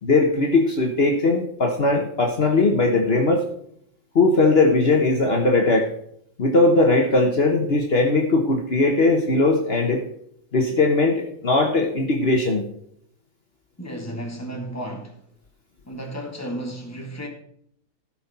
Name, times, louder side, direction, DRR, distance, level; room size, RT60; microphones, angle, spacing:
voice 1, 0.0-3.4 4.1-5.9 6.4-10.0 10.5-12.7, left 2 dB, 50° left, 1.4 m, -19 dB
voice 2, 13.8-15.2 15.9-17.3, right 1 dB, 10° left, 1.8 m, -33 dB
15.5 x 6.1 x 4.2 m
omnidirectional pair, 1.4 m